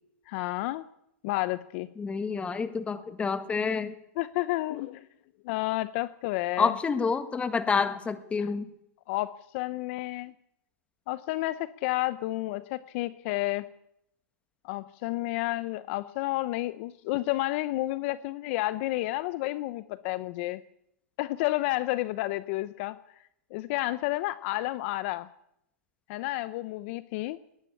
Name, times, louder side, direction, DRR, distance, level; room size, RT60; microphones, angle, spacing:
voice 1, 0.3-0.8 1.2-1.9 4.2-5.1 5.4-6.7 9.1-10.3 11.1-13.7 14.6-20.6 21.2-23.0 23.5-25.3 26.1-27.4, left 18 dB, 45° left, 15 dB, 0.8 m, -31 dB
voice 2, 2.0-4.0 6.6-8.7, left 5 dB, 15° left, 11 dB, 1.7 m, -28 dB
19.5 x 19.5 x 8.5 m, 0.78 s
hypercardioid pair, 145°, 9 cm